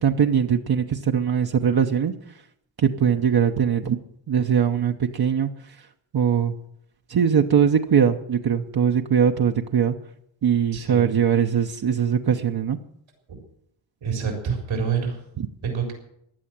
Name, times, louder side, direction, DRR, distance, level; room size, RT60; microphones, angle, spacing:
voice 1, 0.0-2.1 2.8-4.0 4.3-5.5 6.1-6.5 7.1-9.9 10.4-12.8, right 8 dB, 55° right, 3 dB, 0.9 m, -21 dB
voice 2, 10.7-11.1 13.3-13.4 14.0-15.2 15.6-15.9, right 6 dB, 90° right, 1 dB, 4.0 m, -27 dB
15.5 x 10.5 x 7.5 m, 0.73 s
wide cardioid pair, 100°, 45 cm